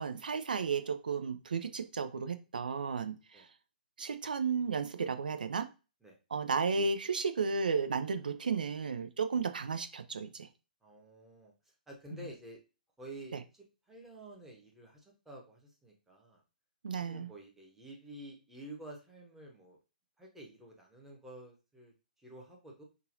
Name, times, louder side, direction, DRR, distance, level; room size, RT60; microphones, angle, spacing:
voice 1, 0.0-3.5 4.0-5.7 6.3-10.5 13.3-13.4 16.8-17.3, right 5 dB, 65° right, 9 dB, 0.5 m, -33 dB
voice 2, 10.8-12.6 13.0-16.4 17.0-19.8 20.2-22.8, right 1 dB, 5° right, -1 dB, 1.0 m, -50 dB
5.5 x 2.4 x 2.6 m, 0.30 s
figure-of-eight pair, 125°, 5 cm